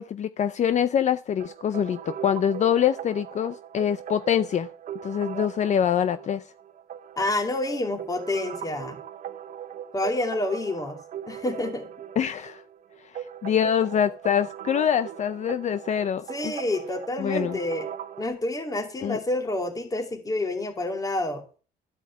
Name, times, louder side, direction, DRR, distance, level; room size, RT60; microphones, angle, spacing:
voice 1, 0.0-4.7 5.0-6.4 12.2-12.6 13.1-16.5 17.2-17.6 19.0-19.2, left 9 dB, 45° left, 13 dB, 0.6 m, -25 dB
sound 1, 1.4-18.3, right 9 dB, 50° right, 0.8 m, -39 dB
voice 2, 7.2-9.0 9.9-11.0 11.3-11.9 16.3-17.9 18.2-21.4, left 2 dB, 20° left, 5 dB, 2.5 m, -28 dB
13.0 x 4.8 x 8.3 m, 0.37 s
cardioid pair, 110°, 17 cm